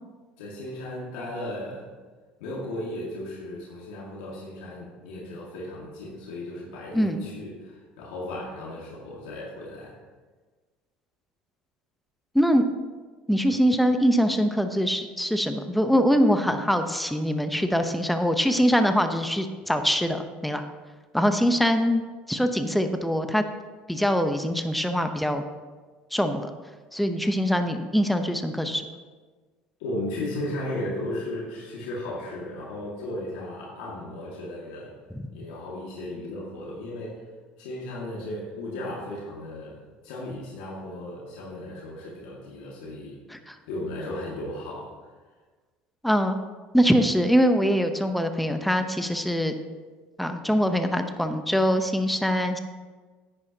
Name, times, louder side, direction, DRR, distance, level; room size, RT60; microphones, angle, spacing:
voice 1, 0.4-1.9 2.4-9.9 29.8-34.9 35.3-37.2 37.6-43.2 43.7-44.9, left 1 dB, 80° left, -4 dB, 1.9 m, -35 dB
voice 2, 13.3-20.6 21.1-22.0 22.3-23.4 23.9-25.4 26.1-26.5 26.9-28.8 35.1-35.3 43.3-43.6 46.0-46.4 46.7-49.6 50.2-52.6, equal, ahead, 7 dB, 0.8 m, -23 dB
9.9 x 9.6 x 2.8 m, 1.4 s
supercardioid pair, 85°, 4 cm